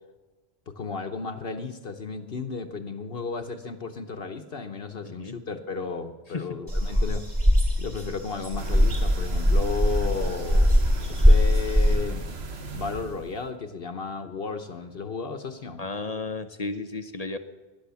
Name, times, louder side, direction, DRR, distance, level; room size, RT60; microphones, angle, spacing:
voice 1, 0.7-7.2 7.8-10.7 11.1-12.2 12.7-15.8, left 4 dB, 60° left, 7 dB, 1.2 m, -34 dB
voice 2, 5.0-5.3 6.3-6.5 15.8-17.4, left 3 dB, 40° left, 8 dB, 0.9 m, -33 dB
sound 1, 6.7-12.0, equal, 20° right, 2.9 m, -21 dB
sound 2, 8.6-13.4, right 2 dB, 70° right, 1.6 m, -37 dB
17.5 x 11.0 x 7.0 m, 1.2 s
omnidirectional pair, 1.1 m